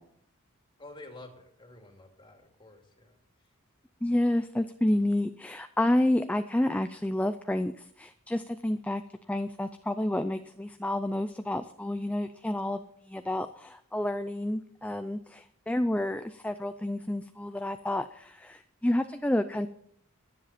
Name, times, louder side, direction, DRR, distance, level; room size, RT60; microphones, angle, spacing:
voice 1, 0.8-3.2, left 2 dB, 25° left, 3 dB, 2.4 m, -50 dB
voice 2, 4.0-9.0 9.3-12.8 13.1-19.7, left 1 dB, 5° left, 9 dB, 0.4 m, -29 dB
22.5 x 7.7 x 4.2 m, 0.66 s
head